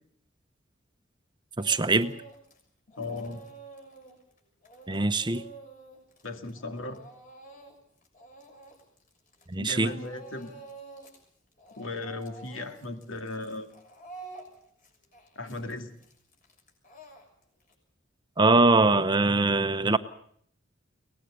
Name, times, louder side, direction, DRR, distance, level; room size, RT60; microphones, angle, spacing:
Speech / Crying sobbing, 1.6-2.6 2.9-9.5 9.8-11.2 11.5-17.7, right 3 dB, 45° left, 6.4 m, -49 dB
voice 1, 1.6-2.1 4.9-5.4 9.5-9.9 18.4-20.0, right 3 dB, 25° right, 10 dB, 0.9 m, -22 dB
voice 2, 3.0-3.4 6.2-7.0 9.6-10.5 11.8-13.7 15.4-15.9, left 2 dB, 80° left, 6 dB, 2.4 m, -36 dB
23.5 x 19.0 x 6.8 m, 0.65 s
head